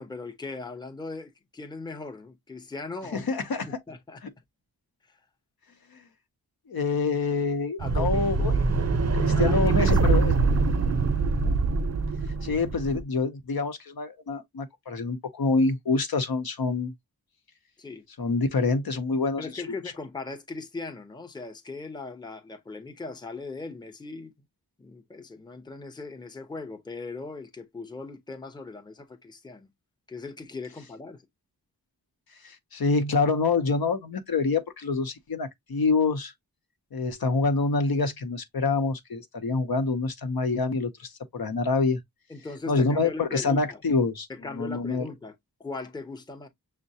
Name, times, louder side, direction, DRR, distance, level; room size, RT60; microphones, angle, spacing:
voice 1, 0.0-3.3 3.9-4.2 5.1-5.2 7.8-8.8 9.3-10.1 17.8-18.1 19.4-24.3 24.8-29.7 30.1-31.2 42.3-43.8 44.3-46.5, left 3 dB, 10° left, 0.6 m, -39 dB
voice 2, 3.1-3.7 5.9-6.0 6.7-8.5 9.1-10.3 12.4-16.9 18.2-19.6 32.4-36.3 36.9-42.0 42.7-44.3 44.5-45.0, left 4 dB, 70° left, 0.8 m, -26 dB
sound 1, 7.8-13.0, right 4 dB, 40° right, 0.6 m, -24 dB
6.4 x 2.1 x 2.7 m
wide cardioid pair, 95°, 38 cm